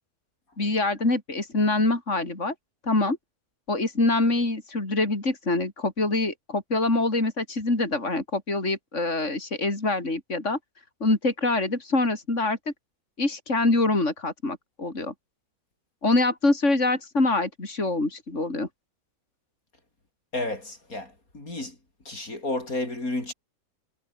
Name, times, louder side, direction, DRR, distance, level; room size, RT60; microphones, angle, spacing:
voice 1, 0.6-2.5 2.8-3.2 3.7-10.6 11.0-12.6 13.2-15.1 16.0-18.7, left 2 dB, 55° left, 5.1 m, -25 dB
voice 2, 20.3-21.7 22.0-23.3, left 2 dB, 75° left, 6.7 m, -31 dB
omnidirectional pair, 1.5 m